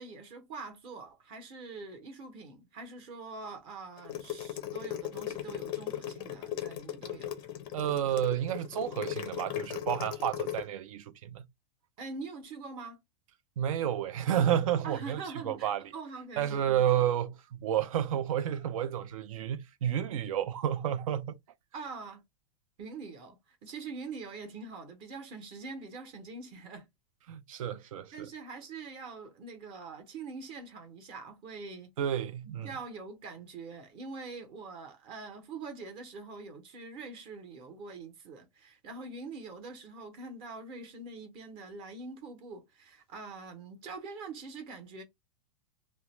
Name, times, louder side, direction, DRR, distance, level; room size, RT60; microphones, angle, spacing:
voice 1, 0.0-7.3 12.0-13.0 14.8-16.6 21.7-22.2 22.8-26.9 28.1-31.9 32.4-45.0, right 4 dB, 30° right, 0.8 m, -44 dB
sound 1, 4.0-10.6, left 11 dB, 25° left, 0.4 m, -37 dB
voice 2, 7.7-11.4 13.6-15.8 16.4-21.3 27.3-28.3 32.0-32.7, right 10 dB, 75° right, 0.5 m, -31 dB
2.4 x 2.1 x 3.0 m
supercardioid pair, 165°, 18 cm